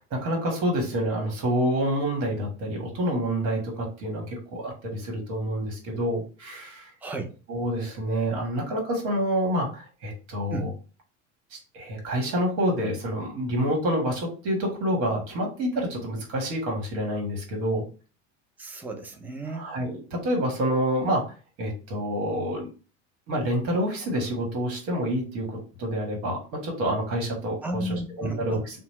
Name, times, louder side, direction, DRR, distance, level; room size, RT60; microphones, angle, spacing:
voice 1, 0.0-6.9 7.5-10.7 11.5-17.9 19.5-21.2 21.6-22.7 23.3-28.8, equal, 65° right, 1 dB, 1.4 m, -28 dB
voice 2, 7.0-7.3 10.5-10.7 18.6-19.7 27.6-28.6, right 2 dB, 5° right, 4 dB, 0.4 m, -33 dB
2.8 x 2.0 x 3.0 m, 0.36 s
hypercardioid pair, 85°, 38 cm